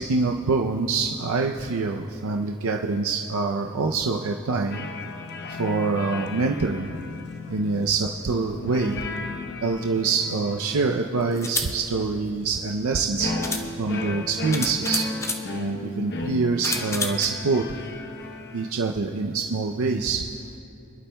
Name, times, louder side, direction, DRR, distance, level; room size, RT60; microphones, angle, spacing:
voice 1, 0.0-4.9 5.5-6.9 7.5-9.0 9.6-13.3 13.8-15.1 15.5-17.7 18.5-20.2, right 4 dB, 75° right, 1 dB, 0.5 m, -25 dB
sound 1, 4.7-18.7, left 2 dB, 50° left, 0.9 m, -35 dB
sound 2, 10.3-10.4 11.3-11.7 12.9-13.0 13.4-13.7 14.5-15.4 16.6-17.3, left 3 dB, 15° left, 0.6 m, -29 dB
27.5 x 11.5 x 2.2 m, 2.8 s
head